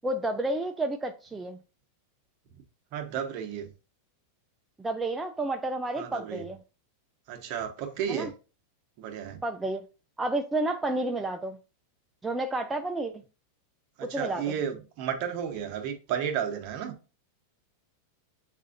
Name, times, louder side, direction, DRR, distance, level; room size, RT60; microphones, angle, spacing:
voice 1, 0.0-1.6 4.8-6.6 8.1-8.3 9.4-9.8 10.2-11.6 12.2-13.1 14.0-14.4, right 2 dB, 10° right, 0.3 m, -30 dB
voice 2, 2.9-3.7 6.0-6.5 7.3-8.3 9.0-9.4 14.0-16.9, right 8 dB, 50° right, 0.9 m, -33 dB
7.1 x 2.5 x 2.5 m
supercardioid pair, 135°, 0 cm